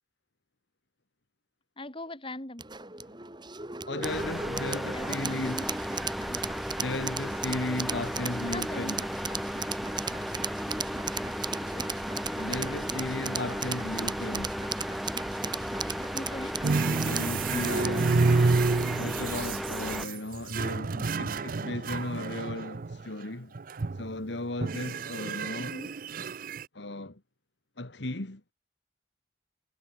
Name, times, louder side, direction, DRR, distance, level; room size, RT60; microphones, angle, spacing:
voice 1, 1.8-2.6 4.9-5.7 6.3-6.5 8.5-9.1 11.6-11.9 16.1-16.6 25.6-25.9, left 1 dB, 30° left, 3.4 m, -40 dB
sound 1, 2.6-19.1, right 5 dB, 25° right, 3.2 m, -37 dB
voice 2, 3.9-5.6 6.8-9.0 12.4-14.6 17.0-18.3 18.9-23.5 24.0-25.8 26.7-27.2 27.8-28.4, left 2 dB, 70° left, 2.0 m, -35 dB
sound 2, 4.0-20.1, equal, ahead, 0.5 m, -35 dB
sound 3, 16.6-23.0 23.5-24.2 24.6-26.6, right 3 dB, 50° right, 0.5 m, -29 dB
head